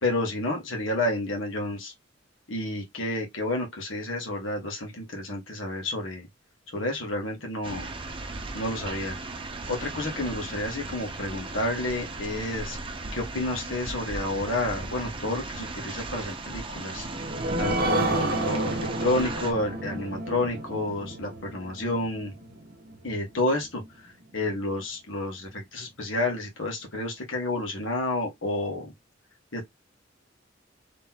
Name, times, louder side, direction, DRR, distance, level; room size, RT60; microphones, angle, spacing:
voice 1, 0.0-1.9 2.5-6.3 6.7-7.9 8.5-9.2 9.7-12.8 13.1-17.1 17.6-22.3 23.0-28.9 29.5-29.7, left 2 dB, 85° left, 1.6 m, -30 dB
sound 1, 7.6-19.5, right 3 dB, 25° right, 0.7 m, -37 dB
sound 2, 16.8-23.9 24.3-24.4 24.8-24.9, right 1 dB, 50° right, 0.9 m, -31 dB
3.9 x 3.3 x 2.9 m
head